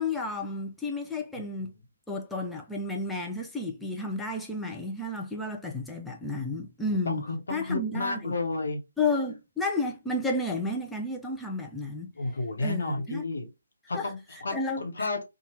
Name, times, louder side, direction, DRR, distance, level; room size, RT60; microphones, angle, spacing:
voice 1, 0.0-1.7 2.1-7.2 7.5-8.4 9.0-12.1 12.6-13.2 13.9-15.1, left 2 dB, 5° left, 0.4 m, -32 dB
voice 2, 7.1-8.8 12.2-13.5 13.9-14.5 14.8-15.2, left 2 dB, 60° left, 0.9 m, -31 dB
2.9 x 2.3 x 3.1 m
figure-of-eight pair, 145°, 0 cm